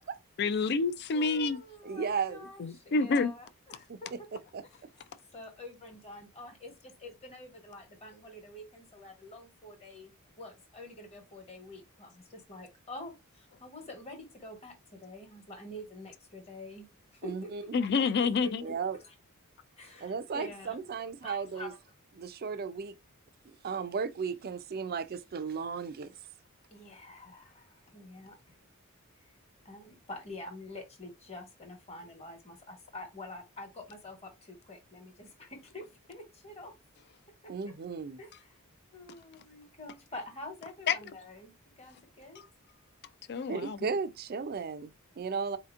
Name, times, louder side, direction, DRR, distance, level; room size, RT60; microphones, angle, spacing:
voice 1, 0.4-1.6 2.6-3.3 17.7-18.6 40.9-41.0 43.3-43.8, left 4 dB, 50° left, 0.4 m, -28 dB
voice 2, 1.1-4.1 5.3-16.9 17.2-17.7 18.4-18.7 19.8-20.7 21.2-21.7 26.7-28.4 29.6-36.7 37.4-37.7 38.2-38.6 38.9-42.4, left 2 dB, 30° left, 1.2 m, -47 dB
voice 3, 1.8-2.5 3.9-4.9 17.2-17.6 18.6-19.0 20.0-21.7 22.2-23.0 23.4-26.2 37.5-38.2 43.5-45.6, right 5 dB, 45° right, 0.4 m, -35 dB
4.2 x 2.8 x 2.4 m
head